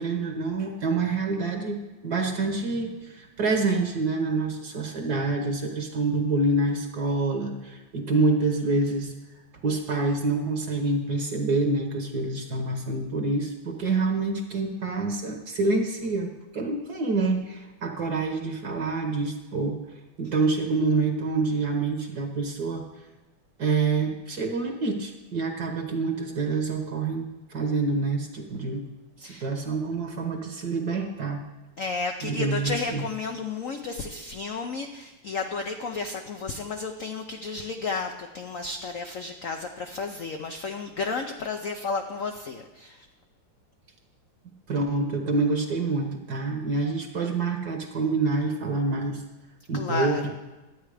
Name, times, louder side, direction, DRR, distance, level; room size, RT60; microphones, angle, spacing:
voice 1, 0.0-9.1 9.6-19.8 20.2-22.8 23.6-28.8 29.2-31.4 32.2-33.0 44.7-49.2 49.7-50.3, right 3 dB, 55° right, 4 dB, 1.4 m, -27 dB
voice 2, 31.8-43.0 49.7-50.3, left 4 dB, 80° left, 4 dB, 0.7 m, -32 dB
11.5 x 8.8 x 4.9 m, 1.1 s
omnidirectional pair, 2.3 m